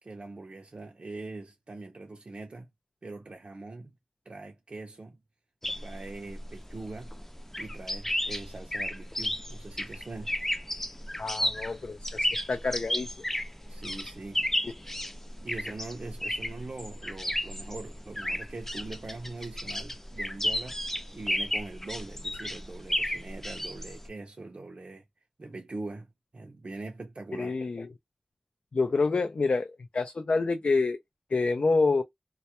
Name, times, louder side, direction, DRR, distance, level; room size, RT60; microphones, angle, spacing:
voice 1, 0.0-2.7 3.0-3.9 4.3-5.2 5.8-7.1 7.6-10.4 13.7-14.7 15.4-25.0 25.4-26.1 26.3-27.5, right 2 dB, 65° right, 0.4 m, -42 dB
sound 1, 5.6-24.1, equal, 15° left, 0.4 m, -33 dB
voice 2, 11.2-13.1 27.4-27.9 28.7-31.0 31.3-32.0, left 3 dB, 85° left, 0.3 m, -27 dB
2.2 x 2.0 x 2.8 m
wide cardioid pair, 60°, 2 cm